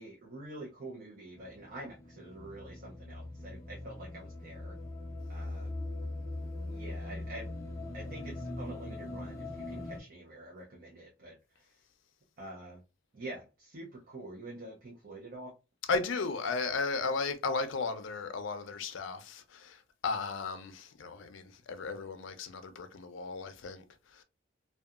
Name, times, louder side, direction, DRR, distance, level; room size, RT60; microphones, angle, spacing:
voice 1, 0.0-4.8 5.3-5.7 6.7-7.5 7.9-11.7 12.4-12.8 13.1-15.5, right 1 dB, 45° right, 0.5 m, -46 dB
sound 1, 1.4-10.0, left 2 dB, 15° left, 0.5 m, -41 dB
voice 2, 15.9-23.8 24.1-24.2, left 4 dB, 75° left, 0.4 m, -35 dB
2.7 x 2.2 x 2.3 m
head